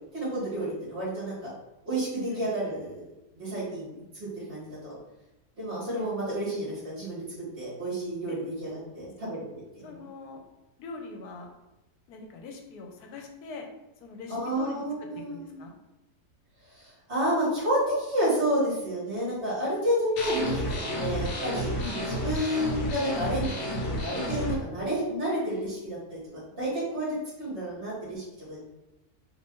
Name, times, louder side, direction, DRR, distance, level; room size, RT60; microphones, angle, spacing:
voice 1, 0.1-1.4 1.8-3.0 3.3-3.9 4.2-5.0 5.6-9.4 9.7-10.1 14.3-15.6 16.7-28.6, equal, 45° right, -9 dB, 1.6 m, -30 dB
voice 2, 9.8-10.4 10.8-11.5 12.1-13.7 14.0-14.8 15.3-15.7 21.8-22.0, left 4 dB, 85° left, 3 dB, 1.1 m, -42 dB
sound 1, 20.2-24.5, equal, 55° left, 1.0 m, -31 dB
3.1 x 2.5 x 3.6 m, 0.98 s
omnidirectional pair, 1.6 m